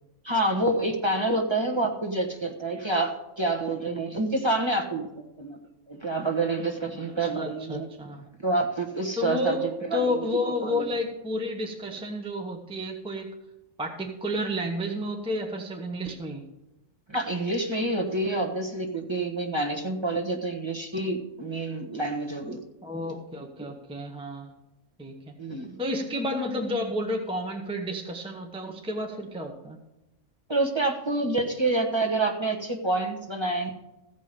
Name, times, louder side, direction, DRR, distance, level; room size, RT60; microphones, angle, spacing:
voice 1, 0.2-5.0 5.4-5.6 5.9-7.9 8.4-9.5 9.9-10.3 10.6-10.9 17.1-22.6 25.4-25.8 30.5-33.7, right 2 dB, 20° right, 1 dB, 1.3 m, -27 dB
voice 2, 7.2-8.3 9.2-13.3 13.8-16.5 22.8-24.5 25.0-25.3 25.8-29.8, left 1 dB, 5° right, 2 dB, 0.9 m, -31 dB
15.0 x 5.6 x 6.7 m, 0.94 s
omnidirectional pair, 1.3 m